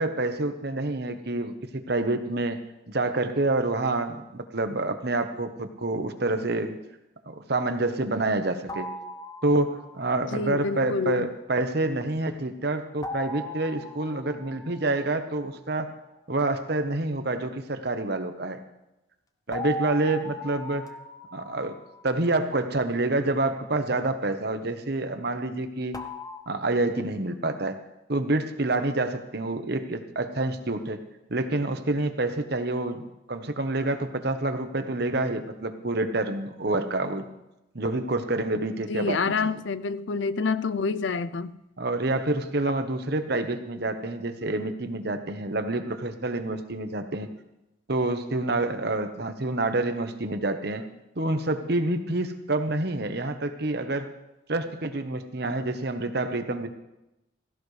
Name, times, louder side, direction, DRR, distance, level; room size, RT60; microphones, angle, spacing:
voice 1, 0.0-2.6 2.9-6.8 7.2-8.9 9.4-15.9 16.3-18.6 19.5-20.9 21.3-21.8 22.0-26.0 26.5-27.8 28.1-31.0 31.3-37.3 37.7-39.2 41.8-47.3 47.9-50.9 51.2-54.1 54.5-56.7, right 2 dB, 55° right, 1.1 m, -27 dB
sound 1, 8.7-10.2 13.0-15.5 19.5-22.7 25.9-26.4, left 1 dB, 20° left, 0.7 m, -38 dB
voice 2, 10.3-11.3 38.9-41.6, left 4 dB, 65° left, 0.5 m, -27 dB
16.5 x 16.0 x 3.3 m
head